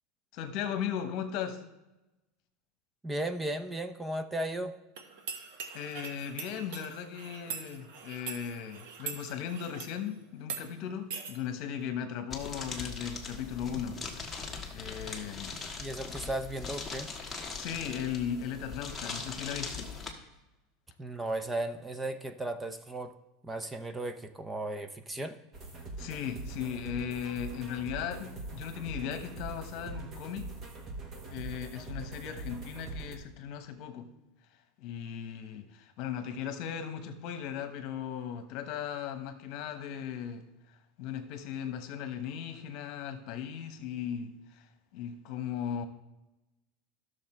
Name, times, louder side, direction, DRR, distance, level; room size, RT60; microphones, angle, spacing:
voice 1, 0.3-1.6 5.7-14.0 14.7-15.6 17.5-19.9 26.0-30.5 31.3-34.1 34.8-40.4 41.0-44.7 44.9-45.9, left 8 dB, 55° left, 9 dB, 1.1 m, -37 dB
voice 2, 3.0-4.7 15.8-17.1 21.0-23.1 23.4-25.4, right 1 dB, 10° right, 9 dB, 0.6 m, -35 dB
sound 1, 5.0-10.0 10.4-10.6 11.1-11.3, right 6 dB, 75° right, 1.4 m, -42 dB
sound 2, 12.3-20.1, left 4 dB, 10° left, 1.5 m, -40 dB
sound 3, 25.5-33.2, right 3 dB, 30° right, 1.4 m, -42 dB
13.0 x 6.6 x 4.4 m, 0.98 s
supercardioid pair, 145°, 0 cm